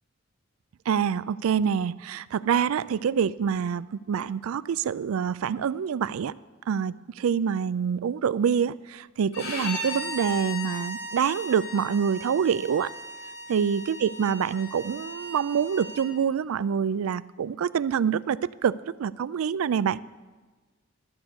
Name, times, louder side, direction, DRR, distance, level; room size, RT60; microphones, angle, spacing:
voice 1, 0.9-6.3 6.7-12.9 13.5-20.0, right 7 dB, 85° right, 19 dB, 0.4 m, -26 dB
Bowed string instrument, 9.3-16.1, left 1 dB, 80° left, 4.4 m, -37 dB
12.5 x 8.1 x 7.0 m, 1.3 s
head